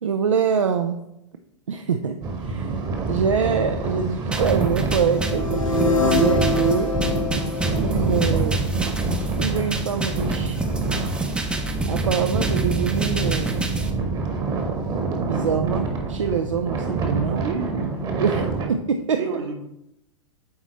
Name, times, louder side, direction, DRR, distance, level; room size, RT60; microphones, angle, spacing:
voice 1, 0.0-1.0 1.7-2.2 2.4-6.9 7.8-8.6 9.4-10.6 11.9-13.6 15.2-17.4 18.2-18.4 18.7-18.8 19.1-19.2, right 7 dB, 75° right, 6 dB, 0.4 m, -24 dB
sound 1, 2.2-18.6, right 4 dB, 25° right, 1.0 m, -26 dB
sound 2, 4.3-13.9, equal, 5° right, 0.6 m, -30 dB
sound 3, 5.0-9.0, left 3 dB, 90° left, 0.9 m, -25 dB
voice 2, 17.2-18.7 19.2-19.5, right 4 dB, 55° right, 4 dB, 1.1 m, -30 dB
8.3 x 3.9 x 3.1 m, 0.84 s
figure-of-eight pair, 100°, 16 cm